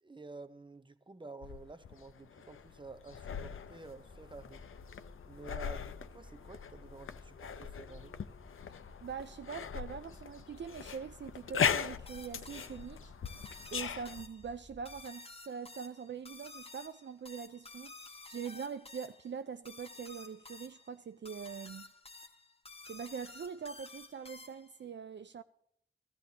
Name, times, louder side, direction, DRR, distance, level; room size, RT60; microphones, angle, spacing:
voice 1, 0.0-4.7 5.2-8.2, right 3 dB, 25° right, 0.7 m, -51 dB
sound 1, 1.4-14.2, left 7 dB, 75° left, 0.5 m, -40 dB
sound 2, 4.1-15.0, left 1 dB, ahead, 1.6 m, -57 dB
voice 2, 9.0-13.1 13.7-21.9 22.9-25.4, right 6 dB, 60° right, 0.4 m, -43 dB
sound 3, 12.1-24.8, left 3 dB, 30° left, 0.9 m, -52 dB
16.5 x 13.0 x 2.8 m
wide cardioid pair, 55°, 21 cm